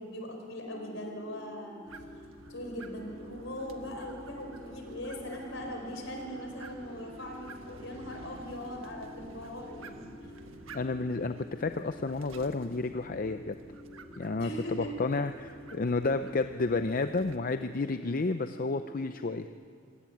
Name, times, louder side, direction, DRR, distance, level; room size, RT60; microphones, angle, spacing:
voice 1, 0.0-1.8 2.5-10.3 14.4-15.1, equal, 65° left, 2 dB, 4.7 m, -40 dB
sound 1, 0.6-19.5, left 1 dB, 25° left, 2.6 m, -50 dB
sound 2, 1.8-17.4, right 3 dB, 85° right, 1.4 m, -52 dB
voice 2, 10.7-13.5 14.2-15.3 15.7-19.5, left 3 dB, 45° left, 9 dB, 0.6 m, -31 dB
26.0 x 17.0 x 8.6 m, 2.2 s
head